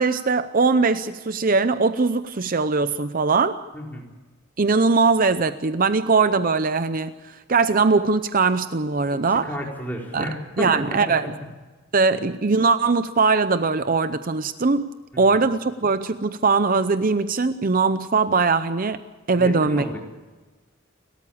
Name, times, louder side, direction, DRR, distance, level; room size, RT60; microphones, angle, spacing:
voice 1, 0.0-3.6 4.6-9.5 10.1-10.3 10.6-11.3 11.9-19.0 19.3-19.8, right 4 dB, 45° right, 12 dB, 0.6 m, -21 dB
voice 2, 3.7-4.1 9.1-11.1 12.1-12.2 15.1-15.2 19.3-20.0, equal, 10° left, -1 dB, 4.2 m, -32 dB
30.0 x 13.5 x 8.6 m, 1.2 s
head